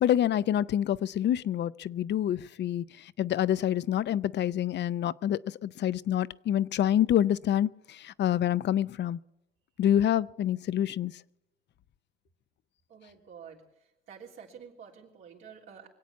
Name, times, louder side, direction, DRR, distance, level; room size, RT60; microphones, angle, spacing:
voice 1, 0.0-9.2 9.8-11.1, left 11 dB, 60° left, 0.5 m, -27 dB
voice 2, 12.9-13.6 14.1-15.9, right 7 dB, 90° right, 3.3 m, -49 dB
23.5 x 8.4 x 7.1 m
cardioid pair, 90°, 20 cm